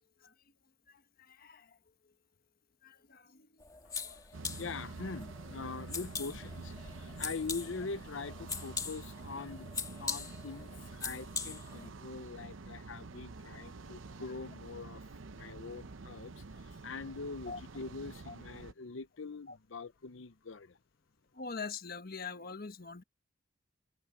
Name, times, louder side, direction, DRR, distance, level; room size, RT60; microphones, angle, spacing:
voice 1, 0.9-1.8 2.8-3.6 15.4-15.5 17.5-17.6 18.3-18.4 19.5-19.6 21.3-23.0, left 4 dB, 50° left, 1.3 m, -44 dB
sound 1, 3.6-11.9, left 5 dB, 20° left, 1.8 m, -42 dB
voice 2, 3.8-20.8, left 4 dB, 70° left, 0.8 m, -43 dB
sound 2, 4.3-18.7, right 3 dB, 75° right, 0.8 m, -48 dB
head